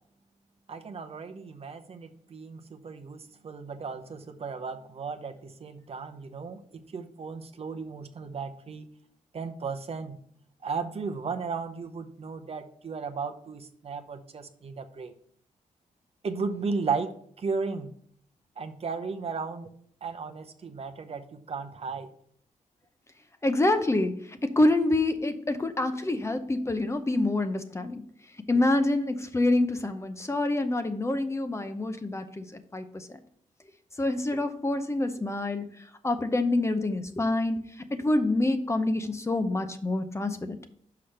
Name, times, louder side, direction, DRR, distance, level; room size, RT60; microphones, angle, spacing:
voice 1, 0.7-8.9 9.3-10.2 10.6-15.1 16.2-17.9 18.6-19.7 20.0-22.1, right 4 dB, 50° right, 7 dB, 0.7 m, -35 dB
voice 2, 23.4-24.1 24.4-28.0 28.5-32.4 32.7-32.8 34.0-35.6 36.0-37.6 37.9-40.5, left 2 dB, 20° left, 8 dB, 0.7 m, -26 dB
5.8 x 4.9 x 5.7 m, 0.64 s
cardioid pair, 80°, 13 cm